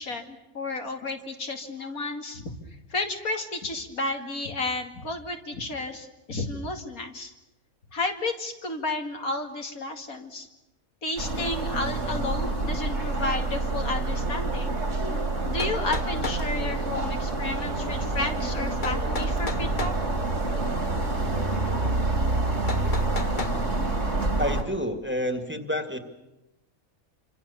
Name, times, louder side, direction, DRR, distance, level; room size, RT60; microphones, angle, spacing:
voice 1, 0.0-2.5 2.9-7.3 7.9-10.5 11.0-14.8 15.4-19.9, left 2 dB, 85° left, 3 dB, 2.9 m, -32 dB
sound 1, 11.2-24.6, right 2 dB, 60° right, 3.3 m, -27 dB
sound 2, 15.6-16.4 18.8-20.0 22.7-23.6, left 4 dB, 35° left, 1.2 m, -34 dB
voice 2, 24.4-26.0, equal, 10° right, 6 dB, 2.0 m, -29 dB
27.0 x 26.0 x 7.1 m, 0.97 s
omnidirectional pair, 1.5 m